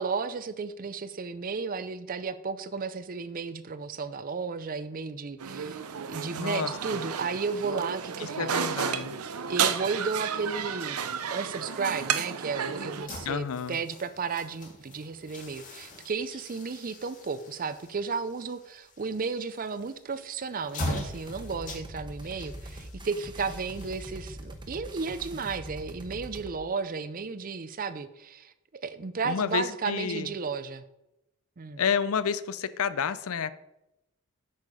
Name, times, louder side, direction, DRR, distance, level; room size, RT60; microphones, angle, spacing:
voice 1, 0.0-8.6 9.5-30.8 31.6-31.8, right 5 dB, 40° right, 13 dB, 0.5 m, -33 dB
sound 1, 5.4-13.1, right 7 dB, 80° right, 0.7 m, -32 dB
voice 2, 6.3-7.0 8.2-9.2 13.3-13.8 29.2-30.3 31.8-33.5, left 6 dB, 70° left, 15 dB, 0.5 m, -30 dB
sound 2, 12.9-26.0, left 1 dB, 35° left, 1.8 m, -42 dB
sound 3, 20.9-26.5, right 1 dB, 20° right, 1.0 m, -43 dB
8.4 x 6.5 x 5.0 m, 0.91 s
head